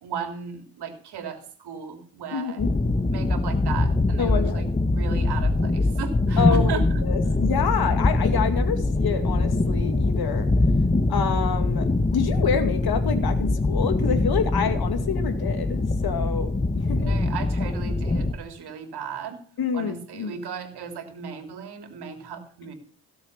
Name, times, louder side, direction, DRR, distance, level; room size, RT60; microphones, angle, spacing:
voice 1, 0.0-2.7 3.1-7.0 17.0-19.4 19.7-22.7, right 7 dB, 75° right, 6 dB, 3.2 m, -36 dB
voice 2, 2.3-2.7 4.2-4.6 6.4-10.5 11.1-16.5 16.9-17.1 19.6-20.4, left 6 dB, 65° left, 9 dB, 2.3 m, -27 dB
sound 1, 2.6-18.3, left 2 dB, 20° left, 1.6 m, -23 dB
17.0 x 7.3 x 6.8 m, 0.44 s
cardioid pair, 70°, 39 cm